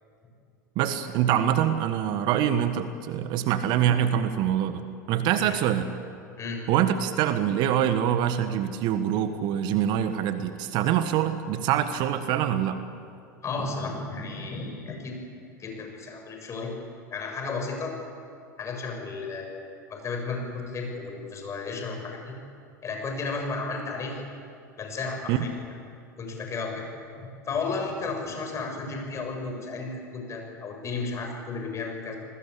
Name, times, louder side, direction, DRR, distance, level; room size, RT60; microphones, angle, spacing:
voice 1, 0.7-5.9 6.7-12.8 25.3-25.4, right 10 dB, 50° right, 10 dB, 1.6 m, -25 dB
voice 2, 13.4-15.1 15.6-16.7 17.1-17.9 18.6-22.4 22.8-24.2 24.8-25.5 26.2-26.8 27.2-32.2, left 4 dB, 30° left, 2 dB, 7.4 m, -33 dB
29.5 x 20.0 x 8.6 m, 2.4 s
figure-of-eight pair, 85°, 10 cm